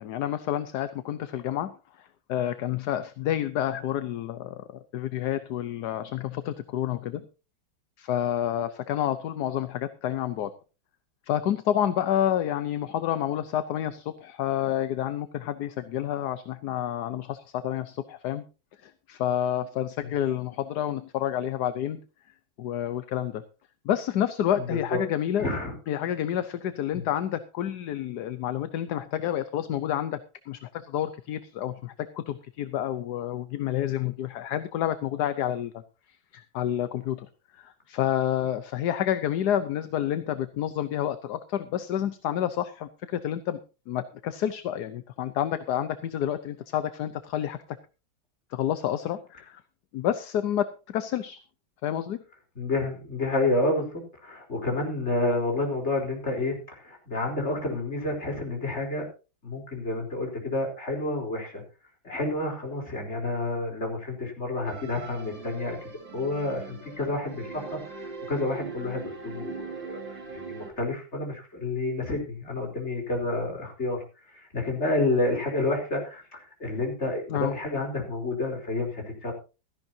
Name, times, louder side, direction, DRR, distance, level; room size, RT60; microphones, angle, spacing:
voice 1, 0.0-1.7 2.0-4.6 4.9-7.2 8.0-10.5 11.3-18.4 18.8-22.0 22.6-23.4 23.8-25.5 25.9-30.2 30.5-35.7 36.3-37.3 37.6-43.6 43.9-47.6 48.5-49.6 49.9-51.4 51.8-52.2 77.3-77.5, left 11 dB, 65° left, 11 dB, 1.2 m, -29 dB
voice 2, 24.5-25.0 25.4-25.7 26.9-27.0 52.6-53.9 54.2-59.1 59.4-61.6 62.0-79.3, left 2 dB, 35° left, 1 dB, 4.2 m, -29 dB
sound 1, 64.7-70.7, right 5 dB, 65° right, 3.6 m, -41 dB
16.0 x 13.5 x 2.8 m, 0.31 s
omnidirectional pair, 2.1 m